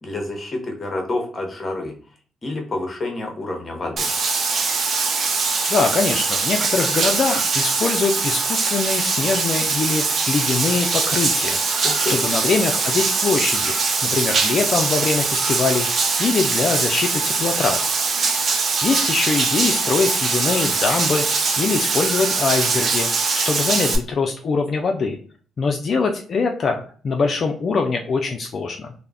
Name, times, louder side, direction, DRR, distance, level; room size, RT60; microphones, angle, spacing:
voice 1, 0.0-1.9 2.4-4.1 11.8-12.1, left 2 dB, 30° left, 2 dB, 0.8 m, -28 dB
Bathtub (filling or washing), 4.0-24.0, right 4 dB, 50° right, 0.5 m, -22 dB
voice 2, 5.7-13.7 14.0-17.9 18.8-25.2 25.6-28.9, left 4 dB, 50° left, 4 dB, 0.3 m, -23 dB
2.3 x 2.0 x 3.4 m, 0.42 s
cardioid pair, 90°, 0 cm